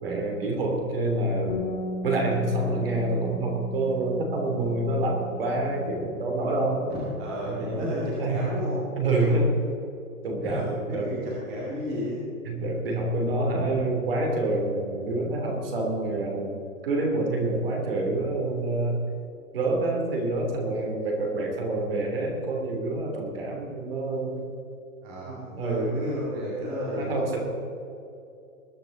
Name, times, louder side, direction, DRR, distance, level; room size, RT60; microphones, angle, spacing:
voice 1, 0.0-1.7 2.0-6.8 7.4-8.5 9.0-9.5 10.2-11.2 12.4-16.5 16.8-19.0 19.5-24.4 25.3-26.0 27.0-27.4, right 2 dB, 40° right, 1 dB, 3.1 m, -27 dB
Bass guitar, 1.5-7.7, left 1 dB, 50° left, 3.2 m, -38 dB
voice 2, 6.9-9.4 10.4-12.2 25.0-27.4, equal, 15° right, -7 dB, 2.2 m, -32 dB
20.5 x 10.0 x 3.9 m, 2.7 s
hypercardioid pair, 175°, 43 cm